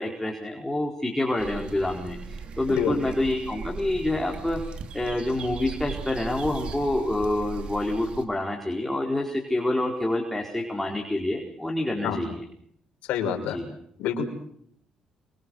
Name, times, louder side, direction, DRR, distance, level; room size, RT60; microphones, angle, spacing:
voice 1, 0.0-4.6 4.9-12.4 13.5-13.6, left 1 dB, 10° left, 0 dB, 4.8 m, -27 dB
sound 1, 1.4-8.2, right 5 dB, 55° right, 3.1 m, -38 dB
voice 2, 13.1-13.6 14.0-14.3, left 8 dB, 85° left, 3 dB, 5.6 m, -27 dB
29.0 x 25.0 x 6.6 m, 0.68 s
cardioid pair, 95°, 2 cm